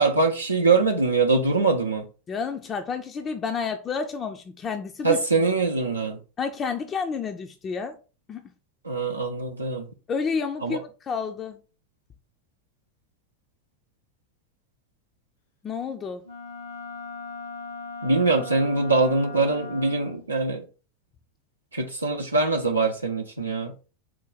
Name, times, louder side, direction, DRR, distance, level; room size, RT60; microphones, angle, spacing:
voice 1, 0.0-2.1 5.0-6.2 8.8-9.9 10.6-10.8 18.0-20.6 21.7-23.7, right 3 dB, 85° right, 0.5 m, -23 dB
voice 2, 2.3-5.2 6.4-8.0 8.3-8.4 10.1-11.6 15.6-16.3, left 5 dB, 30° left, 0.4 m, -30 dB
Wind instrument woodwind instrument, 16.2-20.3, left 3 dB, 70° left, 0.8 m, -38 dB
4.4 x 2.2 x 3.9 m
figure-of-eight pair, 80°, 0 cm